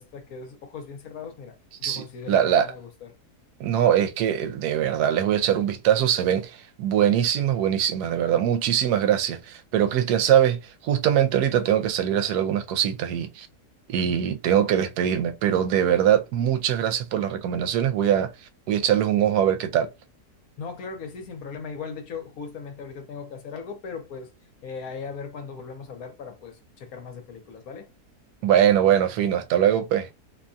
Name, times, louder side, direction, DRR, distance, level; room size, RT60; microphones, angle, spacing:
voice 1, 0.0-3.1 20.6-24.3 24.6-27.9, left 5 dB, 65° left, 1.2 m, -38 dB
voice 2, 1.8-2.7 3.6-13.5 13.9-18.3 18.7-19.9 28.4-30.1, right 10 dB, 80° right, 1.1 m, -22 dB
2.9 x 2.2 x 2.5 m
omnidirectional pair, 1.7 m